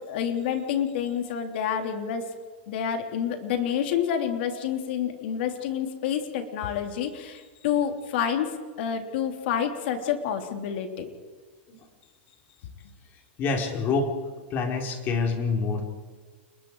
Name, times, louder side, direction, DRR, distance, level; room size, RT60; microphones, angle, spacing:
voice 1, 0.1-2.2 2.7-11.1, left 8 dB, 65° left, 5 dB, 3.5 m, -28 dB
voice 2, 13.4-14.1 14.5-15.8, left 4 dB, 35° left, 2 dB, 4.5 m, -26 dB
29.5 x 21.5 x 4.9 m, 1.5 s
supercardioid pair, 150°, 6 cm